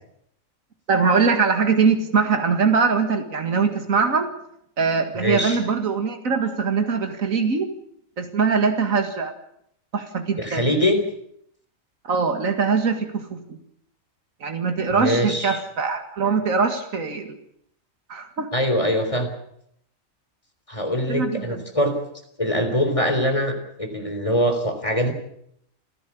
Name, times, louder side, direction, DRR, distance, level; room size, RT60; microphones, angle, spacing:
voice 1, 0.9-4.3 4.8-7.7 8.2-9.3 9.9-10.7 12.0-13.6 14.4-17.4 18.1-18.5 21.1-21.6, right 5 dB, 75° right, 6 dB, 2.3 m, -22 dB
voice 2, 5.1-5.6 10.4-11.0 14.9-15.6 18.5-19.3 20.7-22.0 22.4-25.1, equal, 25° left, 5 dB, 3.7 m, -23 dB
29.5 x 11.0 x 8.6 m, 0.72 s
omnidirectional pair, 1.4 m